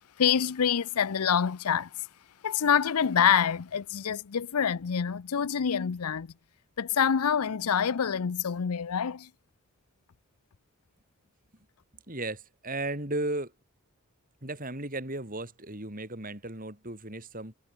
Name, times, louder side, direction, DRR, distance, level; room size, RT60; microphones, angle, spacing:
voice 1, 0.2-1.9 2.4-6.3 6.8-9.3, left 7 dB, 90° left, 0.6 m, -26 dB
voice 2, 12.1-13.5 14.4-17.5, right 2 dB, 40° right, 6.0 m, -35 dB
head